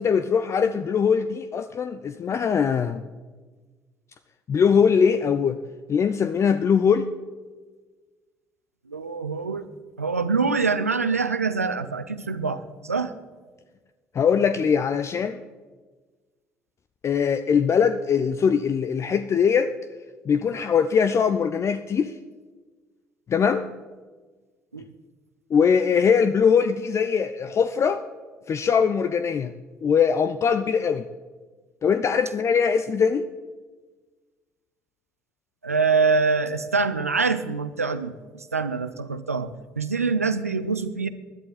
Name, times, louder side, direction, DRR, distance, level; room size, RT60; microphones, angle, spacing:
voice 1, 0.0-3.0 4.5-5.6 5.9-7.1 14.1-15.4 17.0-19.7 20.3-22.1 23.3-23.7 25.5-28.0 28.5-29.5 29.8-31.1 31.8-33.3, left 6 dB, 40° left, 11 dB, 0.6 m, -21 dB
voice 2, 8.9-9.7 10.0-13.1 24.7-24.9 35.6-41.1, right 4 dB, 90° right, 13 dB, 0.5 m, -25 dB
20.0 x 11.0 x 4.2 m, 1.4 s
figure-of-eight pair, 50°, 8 cm